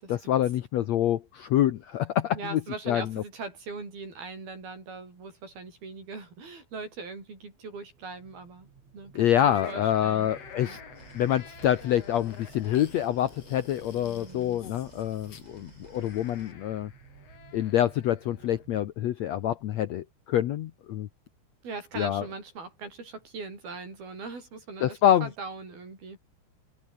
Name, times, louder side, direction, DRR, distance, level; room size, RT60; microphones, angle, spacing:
voice 1, 0.1-2.6 2.9-3.2 9.1-10.8 11.1-16.9 17.5-21.1 22.0-22.2 24.8-25.3, left 11 dB, 75° left, 1.6 m, -26 dB
voice 2, 2.3-8.7 8.9-10.3 10.6-10.8 13.9-14.6 21.6-26.2, right 4 dB, 80° right, 9.8 m, -41 dB
sound 1, 7.7-18.8, right 6 dB, 45° right, 3.8 m, -54 dB
sound 2, 9.5-18.6, left 7 dB, 45° left, 3.2 m, -49 dB
sound 3, 10.9-16.5, right 1 dB, 10° right, 3.6 m, -56 dB
omnidirectional pair, 4.3 m